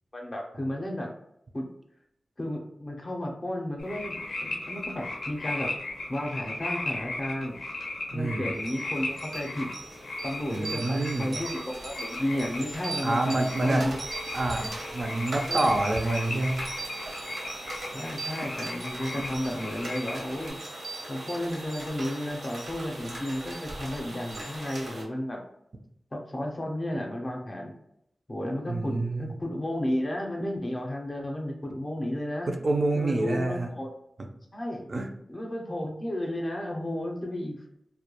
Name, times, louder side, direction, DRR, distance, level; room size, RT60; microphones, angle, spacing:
voice 1, 0.1-1.1 1.5-1.7 2.4-5.8 6.1-7.6 8.1-9.7 10.2-14.0 15.4-15.7 17.9-20.6 21.1-25.4 26.1-27.7 28.3-32.5 32.9-33.9 34.5-34.9 35.3-37.6, left 1 dB, 30° left, 1 dB, 0.5 m, -33 dB
sound 1, 3.8-20.5, left 2 dB, 80° left, 0.5 m, -37 dB
voice 2, 8.1-8.5 10.4-11.3 13.0-13.8 14.3-16.6 28.7-29.3 32.5-33.7 34.9-35.1, right 2 dB, 45° right, 3 dB, 0.3 m, -27 dB
sound 2, 8.6-25.0, right 2 dB, 75° right, 0.7 m, -39 dB
2.2 x 2.1 x 2.8 m, 0.77 s
wide cardioid pair, 115°, 0 cm